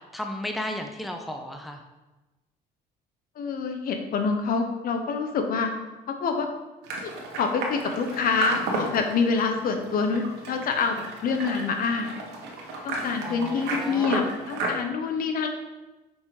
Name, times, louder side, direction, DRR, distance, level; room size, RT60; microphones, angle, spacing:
voice 1, 0.0-1.8 13.2-14.1, left 1 dB, ahead, 4 dB, 0.6 m, -34 dB
voice 2, 3.4-5.7 6.1-6.5 7.0-12.1 12.8-15.5, left 5 dB, 60° left, 5 dB, 0.9 m, -26 dB
sound 1, 6.8-14.7, right 2 dB, 85° right, 1.4 m, -33 dB
5.4 x 5.0 x 4.8 m, 1.1 s
cardioid pair, 110°, 17 cm